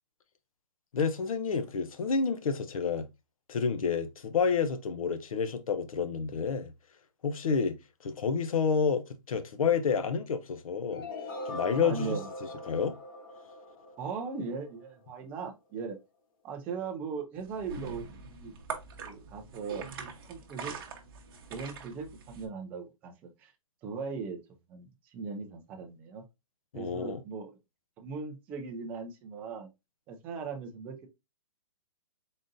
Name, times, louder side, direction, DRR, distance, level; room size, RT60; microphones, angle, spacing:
voice 1, 0.9-3.1 3.5-6.7 7.2-7.8 8.0-11.0 11.5-12.2 12.7-13.0 26.7-27.2, left 5 dB, 80° left, 0.8 m, -29 dB
sound 1, 10.9-14.8, left 2 dB, 40° left, 1.0 m, -42 dB
voice 2, 11.8-12.3 14.0-16.0 16.4-18.5 19.0-20.8 21.5-23.5 23.8-26.2 26.7-27.5 28.0-29.7 30.1-31.1, right 5 dB, 10° right, 0.3 m, -39 dB
sound 2, 17.4-22.5, right 5 dB, 40° right, 0.8 m, -43 dB
3.9 x 3.8 x 2.5 m
hypercardioid pair, 165°, 18 cm